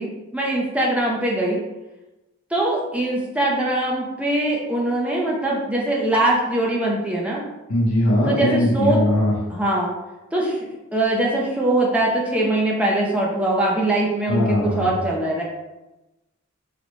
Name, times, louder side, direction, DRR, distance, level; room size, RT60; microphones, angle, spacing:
voice 1, 0.0-1.6 2.5-7.4 8.3-9.0 9.5-9.9 10.3-15.4, right 1 dB, 5° right, -4 dB, 0.4 m, -22 dB
voice 2, 7.7-9.3 14.3-14.9, left 1 dB, 80° left, -5 dB, 0.6 m, -20 dB
4.0 x 2.1 x 3.0 m, 1.0 s
head